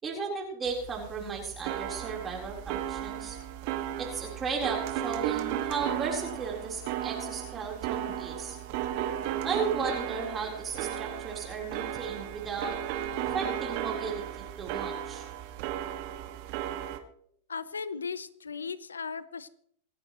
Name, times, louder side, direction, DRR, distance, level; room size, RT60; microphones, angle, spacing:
voice 1, 0.0-3.4 4.0-8.6 9.4-12.8 13.2-15.2, right 5 dB, 25° right, 0 dB, 4.1 m, -35 dB
sound 1, 0.7-17.0, right 11 dB, 55° right, 1.8 m, -35 dB
voice 2, 17.5-19.5, left 5 dB, 90° left, 15 dB, 0.8 m, -37 dB
27.5 x 9.6 x 3.1 m, 0.66 s
hypercardioid pair, 100°, 0 cm